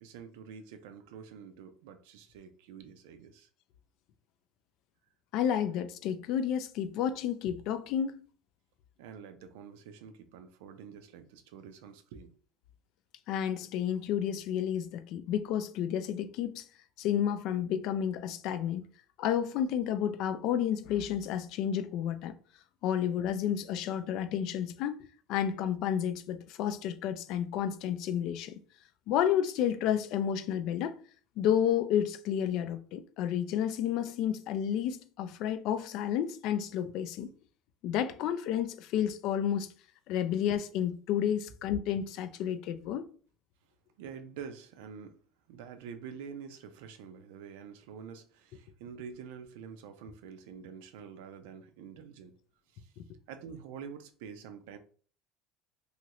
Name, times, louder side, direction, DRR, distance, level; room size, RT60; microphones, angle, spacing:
voice 1, 0.0-3.5 9.0-12.3 44.0-45.2 45.5-52.3 52.7-52.9 53.3-54.8, right 7 dB, 90° right, 0.4 m, -47 dB
voice 2, 5.3-8.2 13.3-16.6 17.0-18.9 19.2-22.3 22.8-25.0 25.3-28.6 29.1-31.0 31.4-37.3 37.8-39.7 40.1-43.1, left 9 dB, 60° left, 0.3 m, -31 dB
3.0 x 2.4 x 2.9 m
cardioid pair, 145°, 0 cm